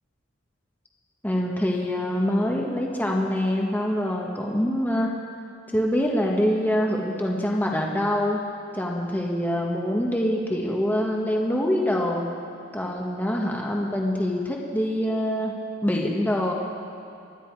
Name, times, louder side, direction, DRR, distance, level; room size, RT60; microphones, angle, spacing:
voice 1, 1.2-5.1 5.7-8.4 8.7-12.3 12.7-15.5 15.8-16.5, equal, 10° left, -1 dB, 1.2 m, -25 dB
27.5 x 10.5 x 4.7 m, 2.5 s
head